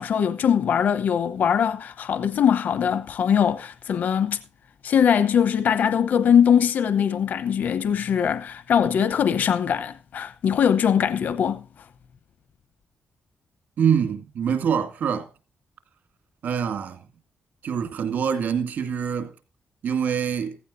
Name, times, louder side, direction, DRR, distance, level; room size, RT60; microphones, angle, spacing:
voice 1, 0.0-4.4 4.8-11.6, left 8 dB, 70° left, 0.8 m, -21 dB
voice 2, 13.8-15.3 16.4-17.0 17.6-19.3 19.8-20.6, right 7 dB, 75° right, 2.2 m, -25 dB
15.5 x 15.0 x 2.6 m
wide cardioid pair, 130°, 3 cm